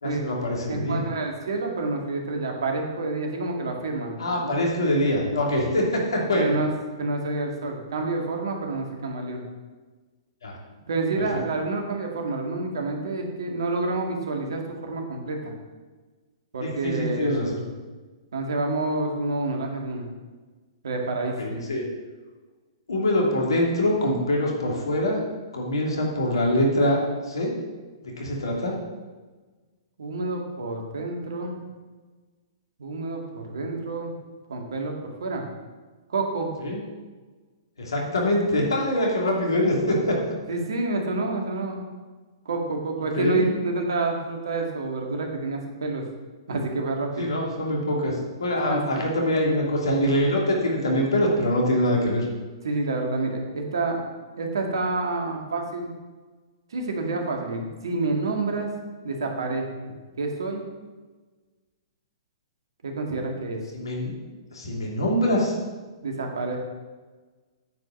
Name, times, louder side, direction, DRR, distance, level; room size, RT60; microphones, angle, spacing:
voice 1, 0.0-1.0 4.2-6.6 10.4-10.6 11.1-11.3 16.6-17.6 21.4-21.8 22.9-25.2 25.5-27.5 28.0-28.8 36.6-36.8 37.8-40.2 43.2-43.5 47.2-52.3 63.7-64.1 64.5-65.6, left 1 dB, 80° left, -2 dB, 2.9 m, -24 dB
voice 2, 0.7-4.5 6.3-6.7 7.0-9.4 10.9-15.5 16.5-17.3 18.3-20.0 20.8-21.6 30.0-31.6 32.8-34.2 34.5-35.5 36.1-36.5 40.5-41.8 42.5-46.0 46.5-47.3 48.6-48.8 52.6-54.0 54.4-55.9 56.7-58.7 59.0-60.6 62.8-63.6 66.0-66.6, right 3 dB, 75° right, 1 dB, 2.1 m, -28 dB
9.3 x 5.2 x 7.3 m, 1.3 s
hypercardioid pair, 120°, 2 cm